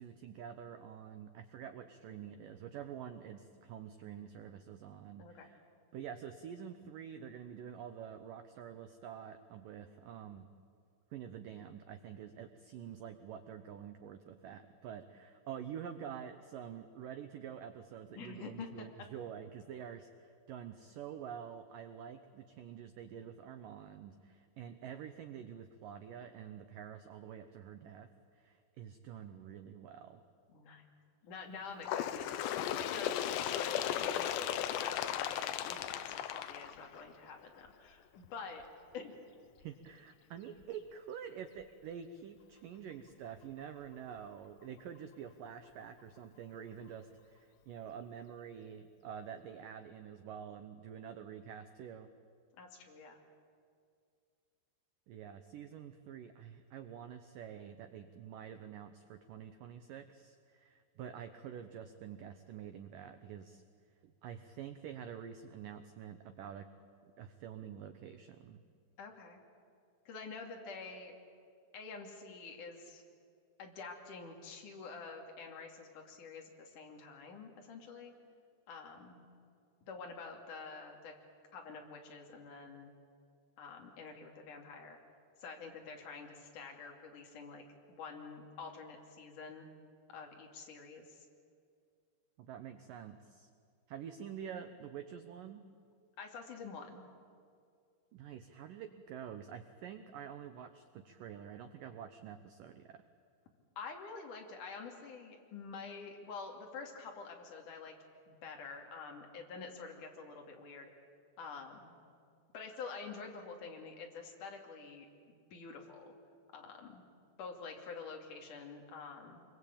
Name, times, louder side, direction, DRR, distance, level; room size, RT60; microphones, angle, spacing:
voice 1, 0.0-5.6 5.9-10.5 11.1-28.1 28.3-30.2 39.6-52.1 55.1-63.6 64.0-66.7 67.2-68.6 92.4-93.5 93.9-95.6 98.1-103.0, right 8 dB, 85° right, 9 dB, 1.9 m, -47 dB
voice 2, 18.2-18.9 30.5-30.8 31.2-32.3 32.8-38.7 38.9-39.1 52.6-53.2 69.0-69.4 70.1-71.1 71.7-73.0 73.6-78.1 78.7-79.2 79.8-81.1 81.5-82.9 83.6-85.0 85.4-89.7 90.1-91.3 96.2-97.1 103.8-108.0 108.3-110.9 111.4-111.9 112.5-116.1 116.5-117.0 117.4-119.5, left 4 dB, 50° left, 2 dB, 3.8 m, -48 dB
Bird, 31.8-37.3 38.2-38.3 38.6-38.7 39.6-39.7 40.6-40.7 41.6-41.7, left 10 dB, 80° left, 3.0 m, -36 dB
26.0 x 22.5 x 8.7 m, 2.3 s
omnidirectional pair, 5.2 m